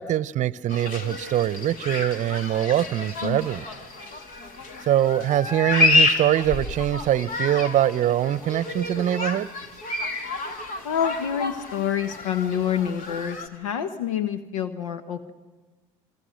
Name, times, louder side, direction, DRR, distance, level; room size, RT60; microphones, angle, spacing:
voice 1, 0.0-3.7 4.9-9.5, right 12 dB, 45° right, 0.8 m, -23 dB
sound 1, 0.7-13.5, left 2 dB, 55° left, 2.8 m, -29 dB
voice 2, 10.8-15.3, left 8 dB, 85° left, 1.1 m, -27 dB
27.5 x 23.5 x 6.5 m
hypercardioid pair, 80°, 17 cm